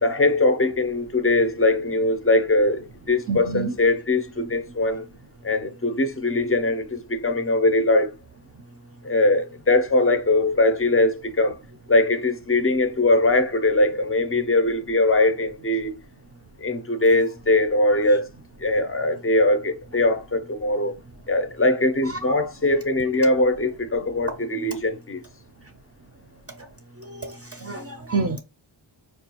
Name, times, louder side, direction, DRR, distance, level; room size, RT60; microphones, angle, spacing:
voice 1, 0.0-5.0 5.4-8.1 9.0-11.6 11.9-15.9 16.6-18.3 18.6-20.9 21.3-25.2, left 2 dB, 30° left, 0.5 m, -21 dB
voice 2, 3.3-3.7 4.4-4.5 22.0-22.4 27.1-27.3 27.6-28.4, right 4 dB, 30° right, 0.5 m, -28 dB
4.3 x 2.3 x 2.9 m
wide cardioid pair, 95°, 48 cm